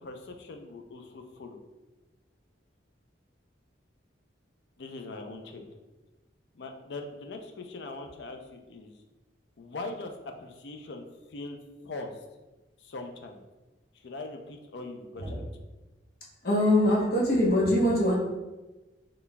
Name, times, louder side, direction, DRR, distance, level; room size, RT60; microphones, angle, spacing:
voice 1, 0.0-1.6 4.8-5.6 6.5-8.9 9.6-10.1 10.4-11.6 11.8-12.2 12.8-13.4 13.9-15.5, left 2 dB, 70° left, 4 dB, 0.5 m, -41 dB
voice 2, 16.4-18.1, left 1 dB, 55° left, -4 dB, 0.9 m, -23 dB
3.9 x 3.2 x 2.2 m, 1.1 s
head